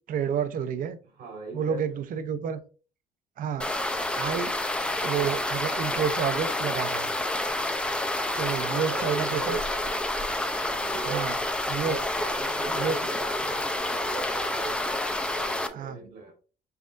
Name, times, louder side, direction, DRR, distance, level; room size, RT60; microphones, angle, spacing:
voice 1, 0.1-1.0 1.5-2.6 3.4-3.7 4.1-4.5 5.0-7.1 8.4-9.6 11.0-11.4 11.7-12.0 12.7-13.0 15.7-16.0, right 7 dB, 55° right, 0.6 m, -30 dB
voice 2, 1.2-1.9 8.6-10.1 10.6-16.3, right 4 dB, 85° right, 2.3 m, -39 dB
sound 1, 3.6-15.7, left 1 dB, 5° left, 0.5 m, -29 dB
5.7 x 3.5 x 2.5 m
cardioid pair, 110°, 17 cm